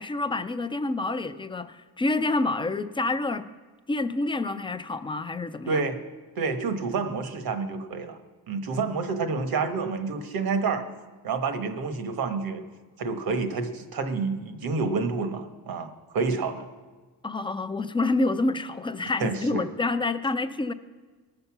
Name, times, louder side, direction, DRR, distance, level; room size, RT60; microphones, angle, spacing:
voice 1, 0.0-3.5 3.9-5.8 17.2-20.7, left 2 dB, 15° left, 10 dB, 0.4 m, -28 dB
voice 2, 5.7-6.0 6.4-8.2 8.5-10.9 11.2-12.6 13.0-16.7 19.2-19.6, right 4 dB, 70° right, 9 dB, 1.3 m, -28 dB
19.5 x 6.8 x 5.9 m, 1.3 s
cardioid pair, 145°, 38 cm